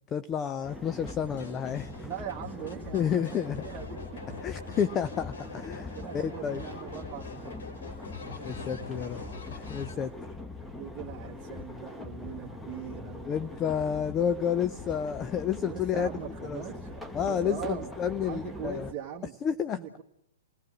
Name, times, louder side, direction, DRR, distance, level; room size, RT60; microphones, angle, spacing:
voice 1, 0.1-2.1 2.9-3.6 4.4-6.6 8.4-9.2 9.5-10.3 13.3-16.1 16.4-16.6 17.1-18.9 19.4-19.8, left 8 dB, 25° left, 0.7 m, -30 dB
sound 1, 0.6-18.9, left 2 dB, 5° left, 1.2 m, -42 dB
sound 2, 0.9-6.3 6.5-9.9, left 5 dB, 70° left, 4.4 m, -47 dB
voice 2, 2.0-4.2 4.5-4.8 5.9-7.6 9.6-10.2 10.7-13.7 15.5-19.3 19.7-20.0, right 9 dB, 20° right, 1.6 m, -41 dB
sound 3, 3.0-9.3, left 2 dB, 90° left, 6.1 m, -46 dB
30.0 x 18.0 x 6.0 m
figure-of-eight pair, 115°, 0 cm